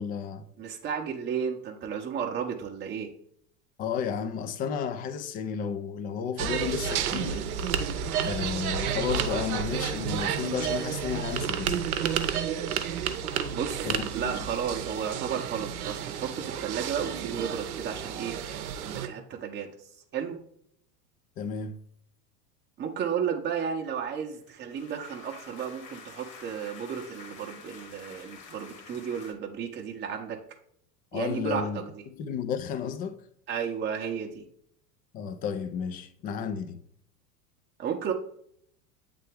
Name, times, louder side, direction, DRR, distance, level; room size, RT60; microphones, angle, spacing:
voice 1, 0.0-0.4 3.8-7.4 8.2-11.8 13.8-14.3 21.4-21.8 31.1-31.8 32.1-33.2 35.1-36.8, left 7 dB, 20° left, 0.3 m, -32 dB
voice 2, 0.6-3.1 13.5-18.3 18.8-19.7 20.1-20.4 22.8-30.4 31.1-31.9 33.5-34.4 37.8-38.1, right 7 dB, 25° right, 0.7 m, -33 dB
sound 1, 6.4-19.1, right 8 dB, 65° right, 0.8 m, -31 dB
sound 2, 24.3-29.3, left 5 dB, 60° left, 1.6 m, -48 dB
8.3 x 3.4 x 3.4 m
figure-of-eight pair, 80°, 46 cm